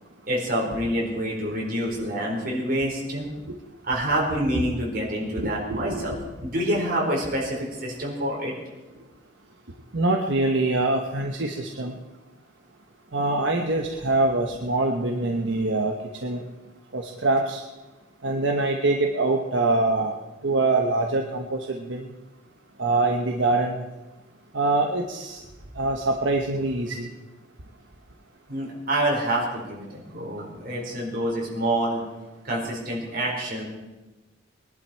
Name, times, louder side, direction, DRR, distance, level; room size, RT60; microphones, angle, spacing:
voice 1, 0.3-3.2 3.8-6.1 6.4-8.5 28.5-32.0 32.4-33.6, right 1 dB, 50° right, -2 dB, 4.6 m, -27 dB
voice 2, 5.4-6.2 9.9-11.9 13.1-15.9 16.2-16.4 16.9-17.6 18.2-20.1 20.4-22.1 22.8-23.8 24.5-25.4 25.8-27.1, right 2 dB, 75° right, 2 dB, 1.1 m, -24 dB
21.5 x 11.0 x 4.6 m, 1.1 s
head